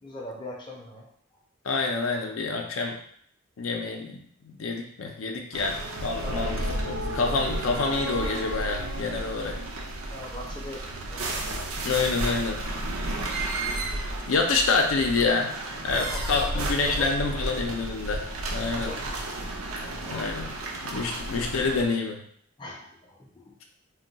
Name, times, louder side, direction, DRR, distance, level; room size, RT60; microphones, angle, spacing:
voice 1, 0.0-1.1 6.2-6.4 10.1-11.4 15.7-17.4 18.7-20.4 22.6-23.6, left 1 dB, 20° left, -2 dB, 0.4 m, -41 dB
voice 2, 1.6-3.0 3.6-6.5 6.8-9.6 11.8-12.6 14.3-15.5 15.8-18.2 18.5-18.9 20.1-20.5 20.8-22.2, left 4 dB, 80° left, 2 dB, 0.4 m, -27 dB
sound 1, 5.5-21.9, right 1 dB, 85° right, 0.5 m, -32 dB
sound 2, 13.5-15.3, equal, 70° right, 0.8 m, -45 dB
2.2 x 2.2 x 3.9 m, 0.66 s
head